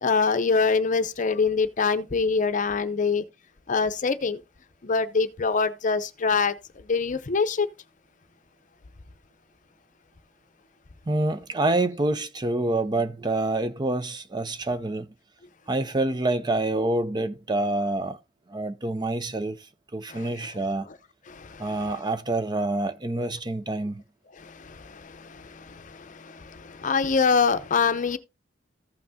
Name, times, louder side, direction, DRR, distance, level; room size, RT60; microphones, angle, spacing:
voice 1, 0.0-3.2 3.7-4.4 4.8-6.5 6.9-7.7 20.1-20.2 21.3-21.7 24.4-28.2, left 5 dB, 45° left, 0.7 m, -25 dB
voice 2, 11.1-15.1 15.7-18.2 18.5-19.6 19.9-20.9 21.6-24.0, right 2 dB, 25° right, 0.5 m, -27 dB
14.5 x 5.8 x 2.7 m
head